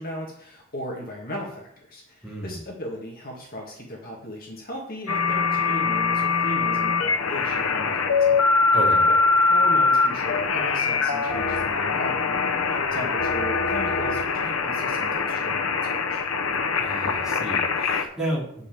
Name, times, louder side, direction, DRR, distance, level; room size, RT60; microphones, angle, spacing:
voice 1, 0.0-8.5 9.1-9.2 9.5-16.3, left 1 dB, 40° left, -1 dB, 1.9 m, -37 dB
voice 2, 2.2-2.6 8.7-9.1 16.8-18.7, right 1 dB, ahead, -6 dB, 3.3 m, -32 dB
sound 1, 5.1-18.0, left 4 dB, 65° left, 0.9 m, -23 dB
9.9 x 5.5 x 6.9 m, 0.72 s
head